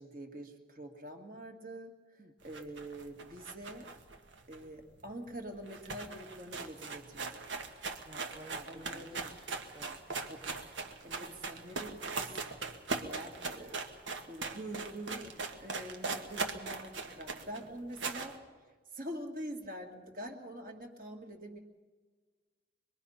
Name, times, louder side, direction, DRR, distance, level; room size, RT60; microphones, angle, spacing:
voice 1, 0.0-3.9 4.5-7.4 8.7-9.4 10.2-10.5 11.0-12.4 12.9-13.8 14.2-15.3 15.6-18.4 18.9-21.6, right 1 dB, 45° right, 3 dB, 2.3 m, -45 dB
sound 1, 2.4-5.1 5.4-5.5 5.7-18.4, right 4 dB, 90° right, 1.7 m, -40 dB
voice 2, 8.0-10.2 15.3-15.6, right 1 dB, 25° right, 1 dB, 0.9 m, -55 dB
25.5 x 21.0 x 5.8 m, 1.4 s
head